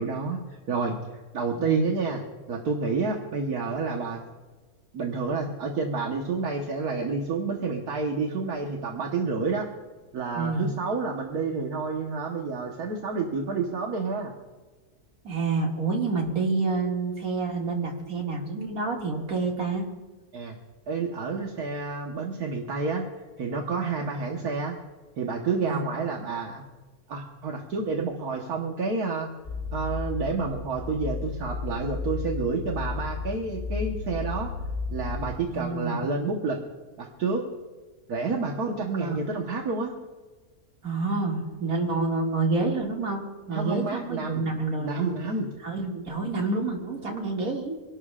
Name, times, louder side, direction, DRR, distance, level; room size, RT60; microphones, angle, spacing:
voice 1, 0.0-4.2 4.9-9.7 10.1-14.3 20.3-20.6 20.9-23.1 23.4-24.7 25.2-26.6 27.1-29.3 29.7-34.5 34.9-36.6 37.0-37.4 38.1-39.9 43.5-44.4 44.7-45.5, right 4 dB, 85° right, 0 dB, 1.8 m, -29 dB
voice 2, 1.6-1.9 10.3-10.7 15.2-19.8 25.6-25.9 35.5-36.1 39.0-39.2 40.8-43.2 43.5-45.1 45.6-47.8, right 3 dB, 70° right, -1 dB, 2.7 m, -28 dB
sound 1, 29.4-35.3, left 4 dB, 20° left, 3.7 m, -33 dB
26.0 x 12.0 x 2.5 m, 1.3 s
omnidirectional pair, 1.6 m